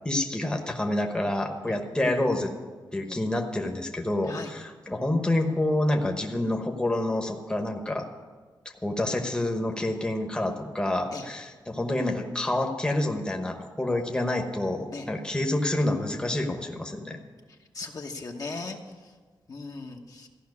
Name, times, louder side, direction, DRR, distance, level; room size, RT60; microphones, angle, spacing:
voice 1, 0.0-2.5 2.9-8.1 8.8-17.2, left 1 dB, 10° left, 3 dB, 1.1 m, -28 dB
voice 2, 17.7-18.8 19.5-20.3, left 3 dB, 45° left, 2 dB, 1.1 m, -37 dB
14.5 x 5.7 x 9.6 m, 1.4 s
wide cardioid pair, 135°, 8 cm